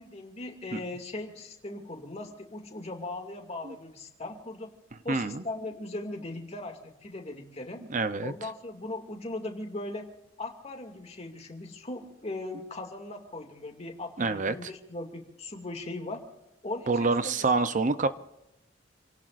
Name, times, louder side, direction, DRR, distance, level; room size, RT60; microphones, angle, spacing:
voice 1, 0.0-4.7 5.0-7.8 8.2-10.1 10.4-16.2 16.6-17.7, left 2 dB, 35° left, 3 dB, 2.4 m, -39 dB
voice 2, 5.1-5.4 7.9-8.3 14.2-14.5 16.9-18.1, right 3 dB, 40° right, 11 dB, 0.7 m, -26 dB
28.5 x 18.0 x 2.6 m, 0.94 s
head